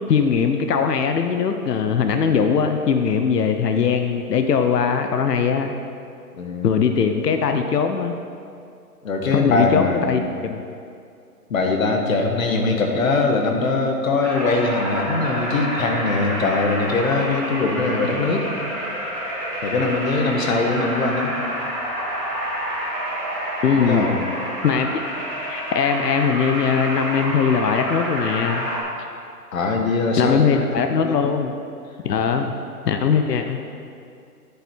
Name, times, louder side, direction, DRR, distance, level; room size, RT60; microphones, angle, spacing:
voice 1, 0.1-5.7 6.6-8.1 9.3-10.6 23.6-24.2 24.6-25.0 25.4-28.7 30.2-31.5 32.0-32.5 32.8-33.6, left 6 dB, 75° left, 6 dB, 0.9 m, -20 dB
voice 2, 6.4-6.7 9.0-10.1 11.5-18.5 19.6-21.3 23.8-24.2 29.5-30.6 30.9-31.3, left 3 dB, 55° left, 3 dB, 1.5 m, -22 dB
sound 1, 14.2-28.8, equal, 5° left, 1.9 m, -28 dB
10.5 x 7.9 x 4.5 m, 2.4 s
hypercardioid pair, 165°, 48 cm